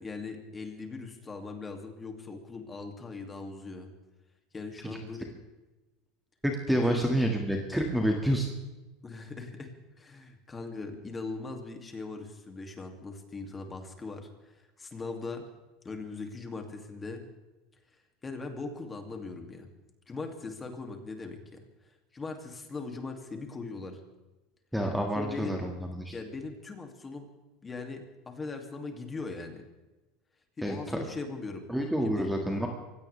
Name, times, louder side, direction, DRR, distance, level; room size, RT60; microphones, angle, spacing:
voice 1, 0.0-3.9 4.5-5.3 6.8-7.0 9.0-15.4 15.8-17.2 18.2-19.7 20.1-21.6 22.1-24.0 25.1-25.6 26.1-27.3 27.6-29.6 30.6-31.7 32.0-32.3, left 3 dB, 15° left, 4 dB, 2.6 m, -40 dB
voice 2, 6.4-8.5 24.7-26.1 30.6-31.0 31.7-32.7, equal, ahead, 2 dB, 2.0 m, -28 dB
24.0 x 17.0 x 3.4 m, 1.1 s
supercardioid pair, 140°, 0 cm